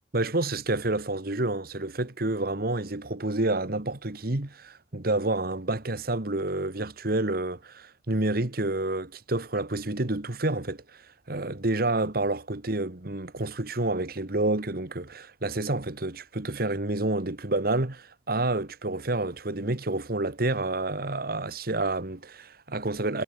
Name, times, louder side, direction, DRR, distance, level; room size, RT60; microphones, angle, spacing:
voice 1, 0.1-23.2, right 2 dB, 60° right, 1.8 m, -29 dB
head